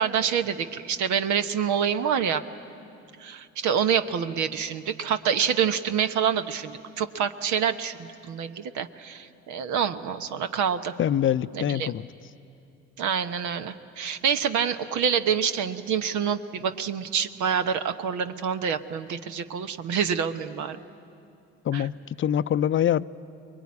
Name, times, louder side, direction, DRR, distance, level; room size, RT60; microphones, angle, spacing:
voice 1, 0.0-2.4 3.2-11.0 11.5-11.9 13.0-20.8 21.7-21.9, right 7 dB, 70° right, 9 dB, 1.0 m, -27 dB
voice 2, 11.0-12.1 21.7-21.9 22.2-23.0, left 10 dB, 40° left, 16 dB, 0.6 m, -24 dB
24.0 x 21.5 x 9.6 m, 2.6 s
supercardioid pair, 65°, 31 cm